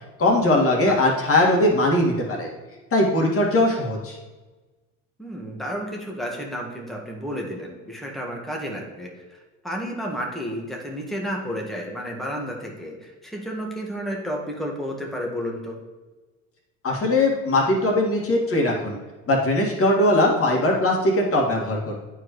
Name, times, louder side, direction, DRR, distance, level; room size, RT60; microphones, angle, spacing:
voice 1, 0.2-2.5 2.9-4.2 16.8-19.0 19.3-21.9, left 1 dB, 35° left, -1 dB, 2.2 m, -20 dB
voice 2, 5.2-9.4 9.6-15.8, equal, ahead, -1 dB, 1.7 m, -31 dB
9.8 x 4.7 x 3.2 m, 1.2 s
hypercardioid pair, 70°, 40 cm